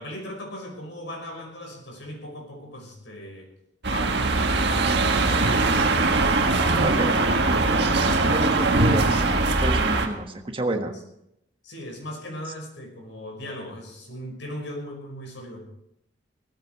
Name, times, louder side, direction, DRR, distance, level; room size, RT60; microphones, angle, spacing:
voice 1, 0.0-3.5 3.9-5.9 6.5-7.2 11.6-15.7, equal, 90° left, 2 dB, 5.6 m, -37 dB
sound 1, 3.8-10.1, right 3 dB, 65° right, 1.8 m, -21 dB
voice 2, 6.8-7.2 7.5-7.6 8.2-9.3 9.6-10.9, right 1 dB, 30° right, 5 dB, 1.4 m, -29 dB
17.5 x 14.0 x 4.7 m, 0.81 s
head